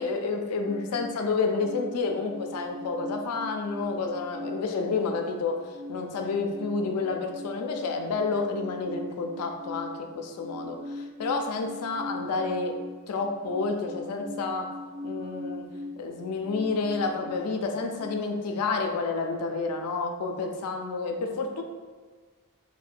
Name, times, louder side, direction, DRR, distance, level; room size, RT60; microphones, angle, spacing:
voice 1, 0.0-5.6 5.9-9.9 10.1-12.8 13.1-14.7 15.0-15.6 16.0-21.6, left 4 dB, 85° left, 4 dB, 0.4 m, -29 dB
sound 1, 0.6-18.1, left 1 dB, 70° right, 1.2 m, -41 dB
2.8 x 2.1 x 2.4 m, 1.5 s
head